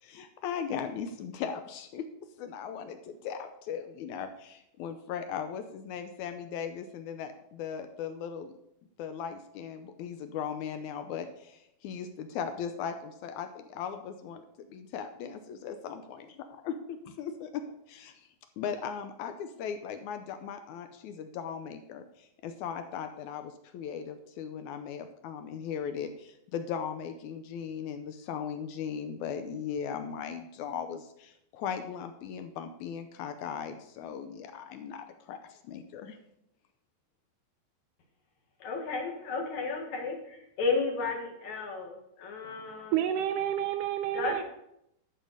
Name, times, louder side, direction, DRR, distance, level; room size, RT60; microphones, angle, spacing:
voice 1, 0.0-2.1 2.4-8.5 9.0-16.2 16.6-16.8 17.2-18.1 18.6-36.2, left 7 dB, 85° left, 8 dB, 1.7 m, -38 dB
voice 2, 38.6-43.0 44.1-44.4, left 4 dB, 55° left, 1 dB, 2.8 m, -33 dB
voice 3, 42.4-44.4, right 11 dB, 80° right, 10 dB, 1.9 m, -30 dB
12.5 x 5.4 x 6.5 m, 0.80 s
omnidirectional pair, 4.3 m